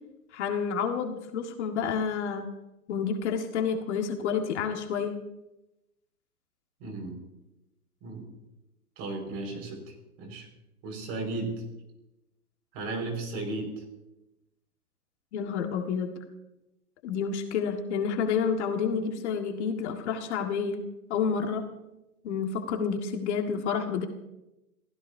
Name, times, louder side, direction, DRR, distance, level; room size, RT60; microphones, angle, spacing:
voice 1, 0.3-2.5 2.9-5.1 15.3-16.1 17.0-20.8 21.1-21.6 22.2-24.1, left 6 dB, 45° left, 4 dB, 1.9 m, -29 dB
voice 2, 6.8-7.1 8.0-8.3 9.0-9.8 10.2-10.5 10.8-11.5 12.7-13.7, right 3 dB, 35° right, 3 dB, 5.3 m, -34 dB
29.5 x 16.0 x 2.8 m, 0.94 s
hypercardioid pair, 135°, 46 cm